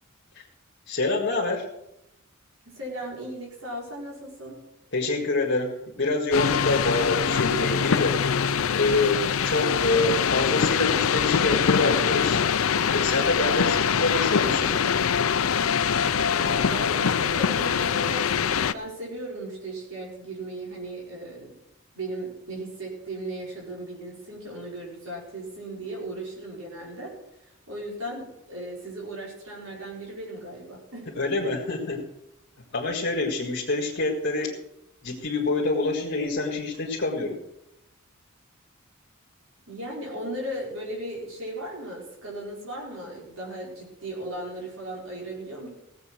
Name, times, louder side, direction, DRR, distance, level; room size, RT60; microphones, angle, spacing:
voice 1, 0.9-1.7 4.9-8.2 8.7-12.4 12.9-14.8 31.2-32.0 32.7-34.5 35.0-37.4, left 2 dB, 60° left, -2 dB, 2.0 m, -26 dB
voice 2, 2.7-4.6 16.3-21.5 21.9-27.1 27.4-31.5 39.7-45.7, right 1 dB, 85° right, -3 dB, 5.3 m, -37 dB
sound 1, 6.3-18.7, left 7 dB, 85° left, 0.6 m, -23 dB
17.0 x 8.1 x 6.4 m, 0.84 s
head